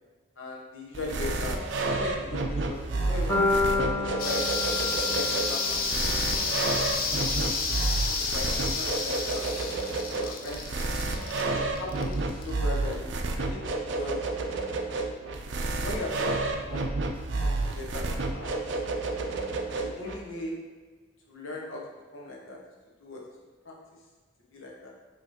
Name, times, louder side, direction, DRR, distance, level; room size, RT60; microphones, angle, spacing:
voice 1, 0.4-1.6 1.9-4.4 4.9-6.1 6.4-6.8 7.1-9.4 10.1-10.9 11.5-13.7 14.0-14.2 15.8-16.9 17.3-18.5 18.8-19.0 19.8-20.5 21.3-21.8 22.1-22.6 23.0-23.2 23.6-23.7 24.5-24.9, left 2 dB, 75° left, -3 dB, 1.0 m, -38 dB
sound 1, 0.9-20.1, right 2 dB, 60° right, 0.4 m, -30 dB
sound 2, 3.3-7.4, left 2 dB, 10° left, 1.2 m, -30 dB
sound 3, 4.2-12.5, left 4 dB, 45° left, 0.5 m, -30 dB
5.7 x 3.1 x 2.9 m, 1.4 s
head